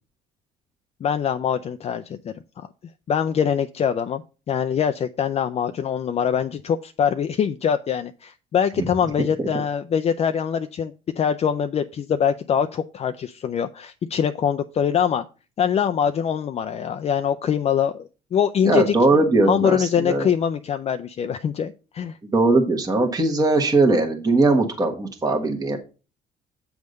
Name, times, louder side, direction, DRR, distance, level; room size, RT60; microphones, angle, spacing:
voice 1, 1.0-2.7 3.1-15.2 15.6-18.9 19.5-22.2, left 8 dB, 40° left, 8 dB, 0.4 m, -23 dB
voice 2, 18.6-20.3 22.2-25.8, right 2 dB, 20° right, 3 dB, 1.2 m, -20 dB
7.9 x 3.5 x 6.3 m, 0.33 s
cardioid pair, 110°, 17 cm